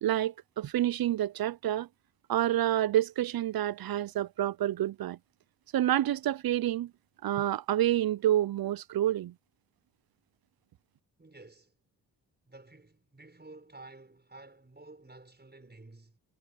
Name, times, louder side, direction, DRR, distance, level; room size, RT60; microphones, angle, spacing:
voice 1, 0.0-1.9 2.3-5.2 5.7-6.9 7.2-9.3, right 12 dB, 50° right, 0.6 m, -28 dB
voice 2, 11.2-11.7 12.4-16.2, right 2 dB, 20° right, 6.2 m, -52 dB
supercardioid pair, 55°, 45 cm